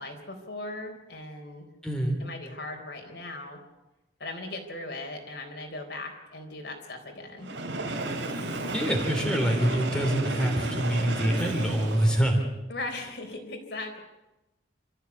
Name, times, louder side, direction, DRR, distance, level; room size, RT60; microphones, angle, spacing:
voice 1, 0.0-1.7 2.2-3.6 4.2-7.5 12.7-14.0, left 2 dB, 60° left, 3 dB, 4.0 m, -38 dB
voice 2, 1.8-2.2 8.7-12.4, right 1 dB, 5° left, 1 dB, 3.2 m, -25 dB
Train, 7.4-12.4, right 2 dB, 80° right, 3.2 m, -33 dB
27.0 x 14.0 x 8.3 m, 0.98 s
head